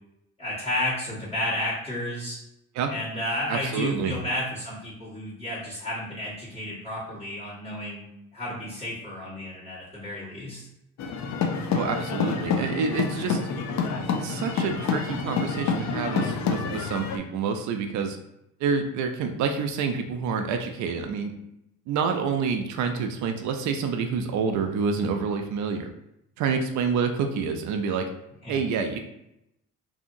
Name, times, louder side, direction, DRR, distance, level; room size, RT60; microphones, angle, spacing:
voice 1, 0.4-2.4 2.9-10.6 28.4-28.6, left 1 dB, 20° left, -10 dB, 1.4 m, -32 dB
voice 2, 3.5-4.1 11.7-13.4 14.2-18.2 18.6-21.3 21.9-25.9 26.4-28.0 28.5-29.0, right 5 dB, 70° right, 5 dB, 0.4 m, -28 dB
sound 1, 11.0-17.2, left 5 dB, 65° left, 0.5 m, -28 dB
2.7 x 2.7 x 2.6 m, 0.83 s
cardioid pair, 90°, 30 cm